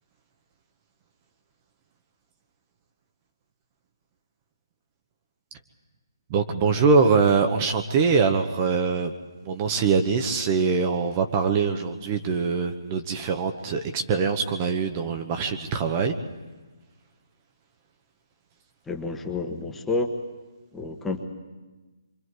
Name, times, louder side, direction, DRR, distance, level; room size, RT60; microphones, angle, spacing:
voice 1, 6.3-9.1 9.4-16.1, right 5 dB, 25° right, 6 dB, 1.0 m, -23 dB
voice 2, 18.9-20.1 20.7-21.2, left 3 dB, 5° left, 3 dB, 1.2 m, -29 dB
28.5 x 24.5 x 4.8 m, 1.2 s
hypercardioid pair, 155°, 2 cm